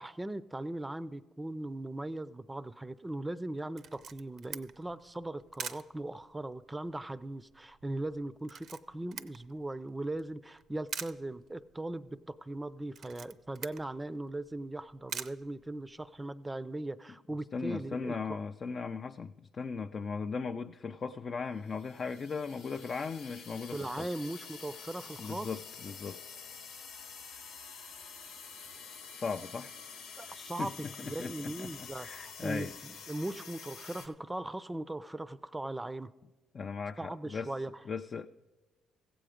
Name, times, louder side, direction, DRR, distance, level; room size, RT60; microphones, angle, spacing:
voice 1, 0.0-18.4 23.7-25.5 30.2-30.7 31.0-36.1 37.0-37.7, right 1 dB, 15° right, 0.5 m, -39 dB
Camera, 3.8-16.3, right 7 dB, 60° right, 0.5 m, -47 dB
voice 2, 17.5-24.1 25.2-26.2 29.1-29.7 30.3-32.7 36.5-37.5 37.9-38.2, left 5 dB, 45° left, 0.4 m, -38 dB
sound 1, 21.6-34.1, left 5 dB, 90° left, 1.0 m, -48 dB
15.0 x 7.8 x 5.0 m
supercardioid pair, 70°, 0 cm